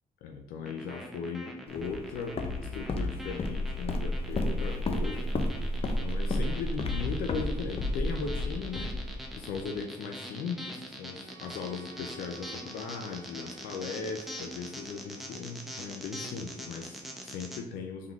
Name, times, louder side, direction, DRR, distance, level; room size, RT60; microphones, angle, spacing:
voice 1, 0.2-2.3 2.6-5.3 6.0-18.1, left 5 dB, 90° left, 3 dB, 0.5 m, -38 dB
sound 1, 0.7-17.6, equal, ahead, 0.8 m, -43 dB
Walk footsteps, 1.8-9.6, left 1 dB, 40° left, 0.5 m, -32 dB
Bowed string instrument, 11.0-16.0, right 2 dB, 60° right, 1.6 m, -56 dB
3.7 x 3.6 x 3.1 m, 0.84 s
cardioid pair, 85°, 15 cm